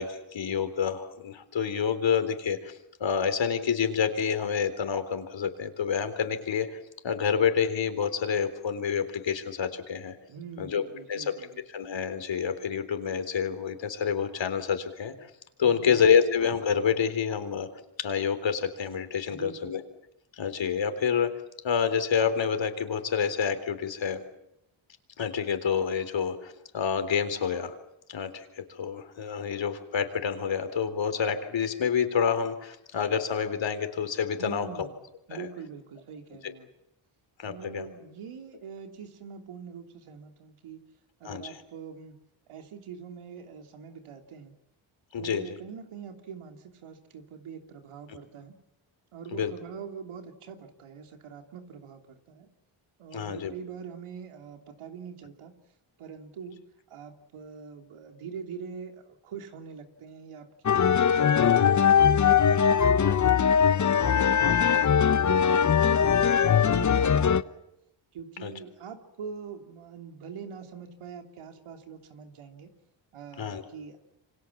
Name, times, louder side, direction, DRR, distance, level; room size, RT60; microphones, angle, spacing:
voice 1, 0.0-6.8 7.0-10.2 10.6-10.8 11.1-11.3 11.7-15.1 15.6-17.7 18.0-19.8 20.4-21.3 21.6-24.2 25.2-27.7 28.1-34.9 35.3-35.5 36.4-36.5 37.4-37.9 41.2-41.5 45.1-45.6 49.3-49.5 53.1-53.5 64.2-64.3 68.4-68.5 73.4-73.6, left 7 dB, 65° left, 9 dB, 3.8 m, -28 dB
voice 2, 10.3-11.6 15.6-16.0 19.3-19.7 34.4-34.9 35.3-36.7 37.4-40.8 41.2-42.2 42.5-44.5 45.2-48.6 49.1-52.5 53.0-55.6 56.0-56.6 56.9-63.4 63.9-65.4 65.8-67.6 68.1-72.7 73.1-74.0, right 6 dB, 85° right, 5 dB, 3.2 m, -43 dB
sound 1, 60.7-67.4, left 7 dB, 35° left, 0.9 m, -21 dB
28.0 x 25.5 x 7.3 m, 0.85 s
cardioid pair, 85°, 49 cm